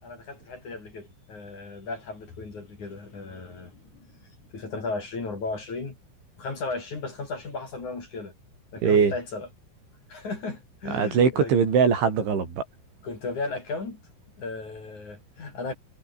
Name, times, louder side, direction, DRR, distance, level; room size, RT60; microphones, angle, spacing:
voice 1, 0.0-6.0 6.4-8.3 8.7-9.5 10.1-11.5 13.0-14.0 14.4-15.7, left 3 dB, 40° left, 6.1 m, -35 dB
voice 2, 8.8-9.1 10.9-12.6, right 6 dB, 70° right, 7.4 m, -21 dB
omnidirectional pair, 5.7 m